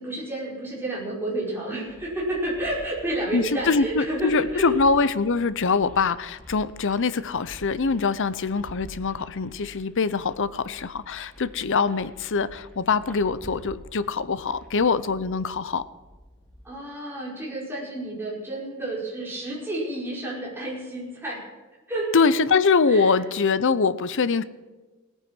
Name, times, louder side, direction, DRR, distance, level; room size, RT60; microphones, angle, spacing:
voice 1, 0.0-4.7 16.6-21.4 21.9-22.1 22.9-23.2, right 1 dB, 10° right, -5 dB, 4.9 m, -30 dB
sound 1, 1.9-16.7, equal, 5° left, 2.2 m, -48 dB
voice 2, 3.3-15.8 22.1-24.4, left 4 dB, 55° left, 15 dB, 0.7 m, -23 dB
18.0 x 9.2 x 6.2 m, 1.3 s
head